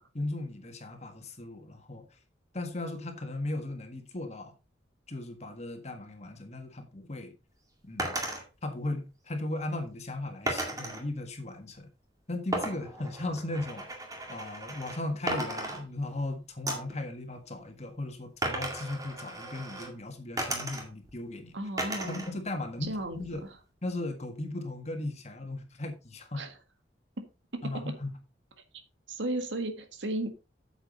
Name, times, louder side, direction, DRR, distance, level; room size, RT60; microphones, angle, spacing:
voice 1, 0.1-2.1 2.5-4.5 5.1-7.3 7.8-8.2 8.6-11.9 12.3-13.9 14.3-21.5 22.0-23.4 23.8-26.5 27.6-28.1, left 2 dB, 35° left, 1.7 m, -37 dB
sound 1, 8.0-8.4 10.5-11.0 12.5-15.0 15.3-16.2 16.7-17.0 18.4-19.9 20.4-21.1 21.8-22.3 22.7-23.5, right 1 dB, 20° right, 2.1 m, -35 dB
voice 2, 21.5-22.2 22.8-23.5 26.3-26.6 27.2-27.3 27.5-27.9 29.1-30.3, right 1 dB, 90° right, 1.7 m, -35 dB
9.1 x 7.2 x 4.0 m
head